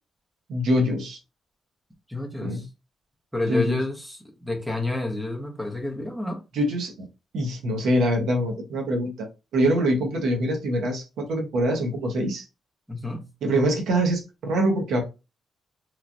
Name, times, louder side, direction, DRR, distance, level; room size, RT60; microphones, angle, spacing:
voice 1, 0.5-1.2 2.4-2.6 3.5-3.8 6.5-7.1 7.3-12.5 13.4-15.0, right 1 dB, 65° right, 0.8 m, -24 dB
voice 2, 2.1-2.7 3.3-6.4 12.9-13.3, left 2 dB, ahead, 0.7 m, -29 dB
3.0 x 2.3 x 2.5 m
wide cardioid pair, 180°, 0 cm